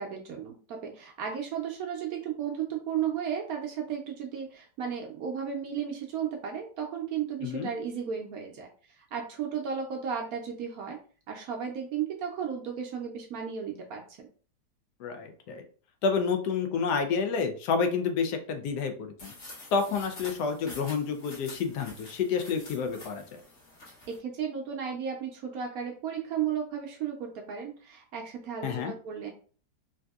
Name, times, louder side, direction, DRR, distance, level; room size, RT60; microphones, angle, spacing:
voice 1, 0.0-8.7 9.1-11.0 11.3-14.3 24.1-29.3, right 7 dB, 70° right, 1 dB, 0.9 m, -34 dB
voice 2, 15.0-15.6 16.0-19.3 19.7-23.4 28.6-28.9, left 5 dB, 75° left, 6 dB, 1.1 m, -29 dB
sound 1, 19.2-24.2, left 2 dB, 45° left, 1.4 m, -47 dB
3.4 x 2.6 x 2.3 m, 0.42 s
omnidirectional pair, 1.8 m